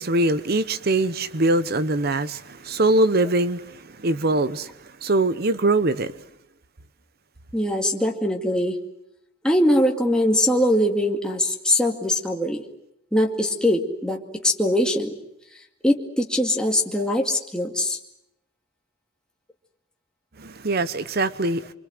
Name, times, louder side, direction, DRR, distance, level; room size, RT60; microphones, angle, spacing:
voice 1, 0.0-4.7 5.0-6.1 20.4-21.6, right 2 dB, 50° right, 0.9 m, -22 dB
voice 2, 7.5-8.8 9.4-12.6 13.1-15.2 15.8-18.0, left 1 dB, 5° left, 2.3 m, -22 dB
26.0 x 25.0 x 7.8 m
head